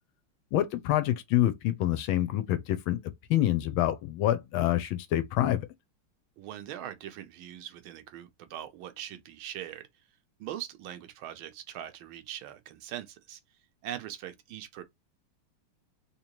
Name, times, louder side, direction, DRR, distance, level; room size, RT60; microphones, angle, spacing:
voice 1, 0.5-3.0 3.3-5.7, left 13 dB, 75° left, 1.3 m, -26 dB
voice 2, 6.4-9.8 10.4-13.4 13.8-14.8, right 11 dB, 75° right, 1.4 m, -41 dB
3.6 x 2.9 x 2.9 m
omnidirectional pair, 2.4 m